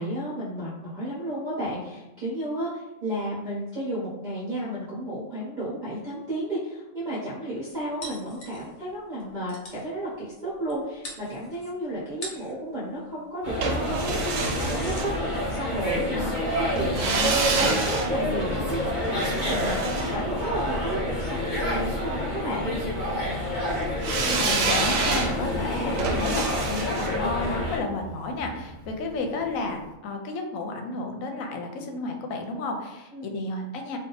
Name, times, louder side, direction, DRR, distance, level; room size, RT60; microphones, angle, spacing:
voice 1, 0.0-22.8 33.1-33.3, right 1 dB, 45° right, -7 dB, 0.7 m, -33 dB
sound 1, 8.0-8.9 9.2-9.3 9.5-9.9 10.7-10.8 11.0-11.7 12.1-12.6 13.7-20.4, equal, 65° left, 1.1 m, -40 dB
sound 2, 13.4-27.8, left 1 dB, 35° left, 1.2 m, -28 dB
sound 3, 13.6-15.7 16.8-21.0 24.0-29.0 29.3-29.4, right 4 dB, 85° right, 1.0 m, -29 dB
voice 2, 24.3-34.0, left 3 dB, 85° left, 3 dB, 1.0 m, -31 dB
2.7 x 2.3 x 3.8 m, 0.96 s
omnidirectional pair, 1.4 m